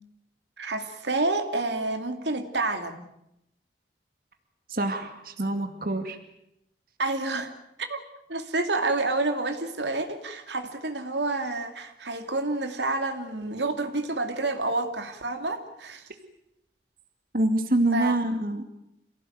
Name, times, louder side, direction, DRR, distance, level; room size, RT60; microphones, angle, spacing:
voice 1, 0.6-3.1 7.0-7.5 7.9-8.0 8.3-16.0 17.9-18.2, right 2 dB, 85° right, 6 dB, 2.7 m, -29 dB
voice 2, 4.7-6.2 17.3-18.7, right 1 dB, 55° right, 6 dB, 2.3 m, -26 dB
27.5 x 17.5 x 9.4 m, 0.83 s
head